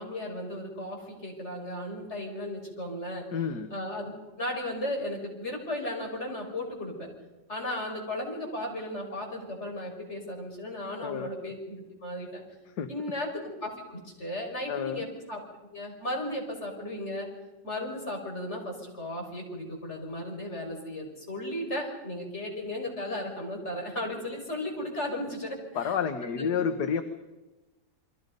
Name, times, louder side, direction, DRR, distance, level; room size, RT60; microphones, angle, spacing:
voice 1, 0.0-3.2 3.7-7.1 7.5-12.4 12.9-15.4 15.7-17.3 17.6-25.9 26.2-26.5, left 1 dB, 35° left, 0 dB, 5.8 m, -35 dB
voice 2, 3.3-3.7 11.0-11.3 12.8-12.9 14.7-15.0 25.7-27.0, left 7 dB, 65° left, 7 dB, 1.7 m, -29 dB
29.5 x 23.0 x 5.3 m, 1.1 s
omnidirectional pair, 2.0 m